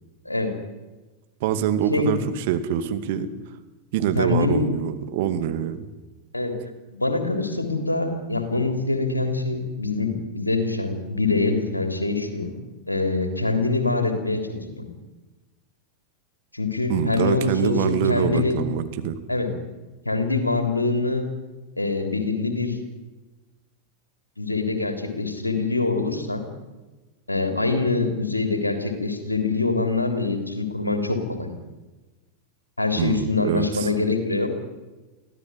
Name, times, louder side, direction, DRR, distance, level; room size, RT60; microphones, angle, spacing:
voice 1, 0.3-0.6 1.9-2.1 4.2-4.7 6.3-6.5 6.9-12.5 12.9-14.8 16.5-18.6 19.3-19.5 20.1-21.2 21.8-22.8 24.4-26.4 27.3-31.5 32.8-34.5, left 3 dB, 85° left, 7 dB, 3.4 m, -24 dB
voice 2, 1.4-3.3 3.9-5.9 16.9-19.2 33.0-33.9, right 10 dB, 50° right, 9 dB, 2.3 m, -25 dB
24.5 x 16.5 x 9.5 m, 1.2 s
figure-of-eight pair, 90°, 0 cm